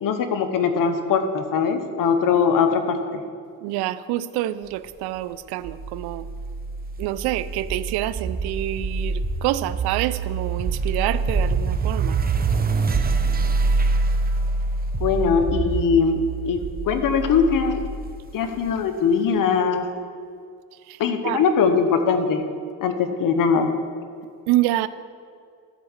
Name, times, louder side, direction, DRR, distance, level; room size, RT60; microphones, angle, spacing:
voice 1, 0.0-3.2 15.0-16.2 16.5-17.8 18.3-19.9 21.0-22.4 22.8-23.7, left 6 dB, 60° left, 7 dB, 1.1 m, -21 dB
voice 2, 3.6-6.3 7.0-12.2 20.9-21.4 24.5-24.9, right 14 dB, 85° right, 15 dB, 0.5 m, -27 dB
sound 1, 5.6-18.8, right 4 dB, 25° right, 0.7 m, -25 dB
13.0 x 4.8 x 7.2 m, 2.3 s
cardioid pair, 95°, 38 cm